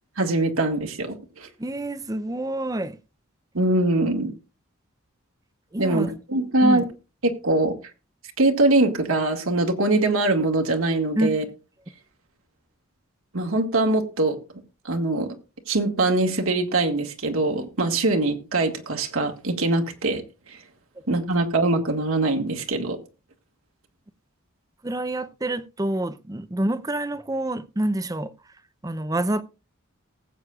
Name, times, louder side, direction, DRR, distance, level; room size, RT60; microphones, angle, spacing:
voice 1, 0.2-1.5 3.5-4.3 5.8-6.8 7.2-7.7 8.4-11.4 13.3-14.4 14.9-15.3 15.7-20.2 20.5-20.6 21.1-23.0, right 2 dB, 70° right, 1.8 m, -22 dB
voice 2, 1.6-3.0 5.7-6.1 6.6-6.9 11.2-11.3 24.8-28.3 28.8-29.4, right 1 dB, 15° right, 0.5 m, -27 dB
19.0 x 8.2 x 2.4 m
head